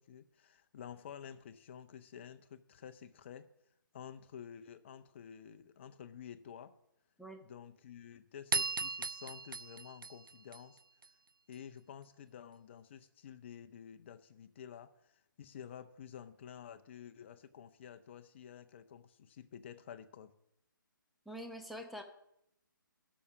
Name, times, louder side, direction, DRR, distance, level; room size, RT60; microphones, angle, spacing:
voice 1, 0.0-3.5 3.9-6.7 7.4-10.8 11.5-20.3, left 8 dB, 35° left, 11 dB, 0.7 m, -51 dB
sound 1, 8.5-11.1, right 4 dB, 80° right, 0.4 m, -37 dB
voice 2, 21.3-22.0, equal, ahead, 4 dB, 0.7 m, -45 dB
12.0 x 6.3 x 7.0 m, 0.80 s
figure-of-eight pair, 140°, 11 cm